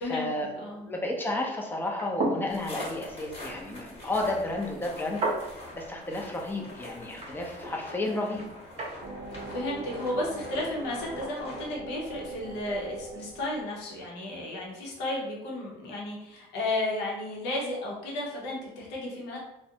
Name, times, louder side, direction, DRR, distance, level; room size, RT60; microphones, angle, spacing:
voice 1, 0.0-0.5 0.7-5.2 5.7-8.4, left 2 dB, 10° left, 0 dB, 0.5 m, -32 dB
voice 2, 0.5-0.9 9.5-19.4, left 1 dB, 90° left, -3 dB, 0.7 m, -33 dB
sound 1, 1.8-9.0, right 2 dB, 40° right, 0.7 m, -37 dB
sound 2, 2.5-11.7, left 1 dB, 35° left, 1.1 m, -44 dB
sound 3, 9.0-14.3, right 2 dB, 80° right, 0.5 m, -42 dB
2.4 x 2.1 x 2.7 m, 0.91 s
cardioid pair, 110°, 17 cm